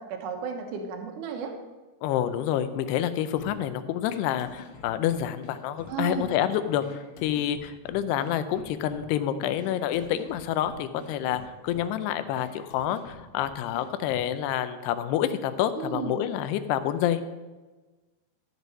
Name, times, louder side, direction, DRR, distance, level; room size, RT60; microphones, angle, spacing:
voice 1, 0.0-1.5 5.9-6.3 15.8-16.2, right 6 dB, 65° right, 3 dB, 2.3 m, -33 dB
voice 2, 2.0-17.2, left 10 dB, 90° left, 11 dB, 2.8 m, -28 dB
sound 1, 3.4-14.4, left 5 dB, 65° left, 2.3 m, -48 dB
13.5 x 6.2 x 5.3 m, 1.2 s
omnidirectional pair, 4.7 m